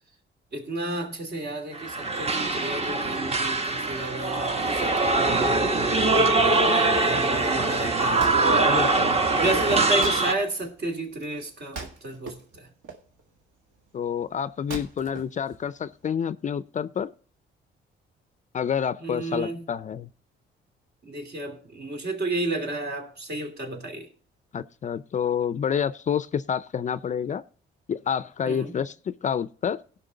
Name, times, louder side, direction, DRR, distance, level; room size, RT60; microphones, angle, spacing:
voice 1, 0.5-6.6 7.0-8.7 9.3-12.7 19.0-19.6 21.0-24.1 28.4-28.7, right 2 dB, 55° right, 2.8 m, -32 dB
sound 1, 1.7-10.3, right 3 dB, 30° right, 1.2 m, -23 dB
Wood, 8.1-16.1, right 4 dB, 80° right, 1.9 m, -42 dB
voice 2, 8.7-9.2 13.9-17.1 18.5-20.1 24.5-27.4 27.9-28.9 29.2-29.8, left 8 dB, 40° left, 0.4 m, -28 dB
17.5 x 5.8 x 3.9 m
cardioid pair, 90°, 20 cm